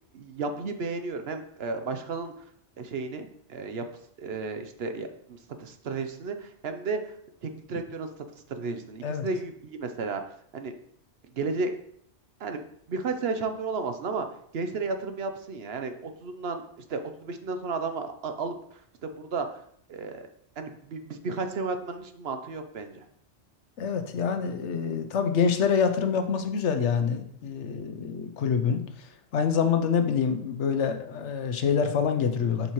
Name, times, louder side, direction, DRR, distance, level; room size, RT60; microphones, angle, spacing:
voice 1, 0.1-2.3 2.8-3.8 4.2-7.2 7.4-8.1 8.5-10.2 10.5-10.7 11.3-11.8 12.4-12.6 12.9-14.3 14.5-19.6 19.9-20.3 20.6-23.1, right 4 dB, 65° right, 7 dB, 0.9 m, -33 dB
voice 2, 23.8-28.8 29.3-32.7, left 6 dB, 80° left, 7 dB, 1.0 m, -26 dB
7.0 x 5.6 x 3.0 m, 0.66 s
omnidirectional pair, 1.2 m